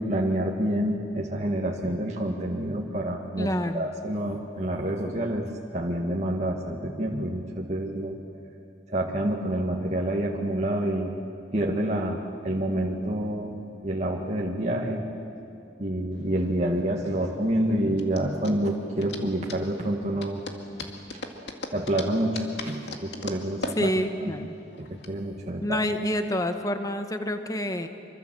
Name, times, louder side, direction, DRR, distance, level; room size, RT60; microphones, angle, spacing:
voice 1, 0.0-8.2 8.9-11.2 11.5-13.6 13.8-15.1 15.8-20.4 21.7-23.9 24.2-24.3 24.8-25.8, right 1 dB, 40° right, -1 dB, 1.8 m, -28 dB
voice 2, 3.4-3.9 16.6-16.8 23.8-24.5 25.6-27.9, left 1 dB, 20° left, 7 dB, 1.3 m, -28 dB
sound 1, 16.2-25.1, left 2 dB, 65° left, 2.2 m, -39 dB
26.0 x 24.0 x 7.7 m, 2.8 s
head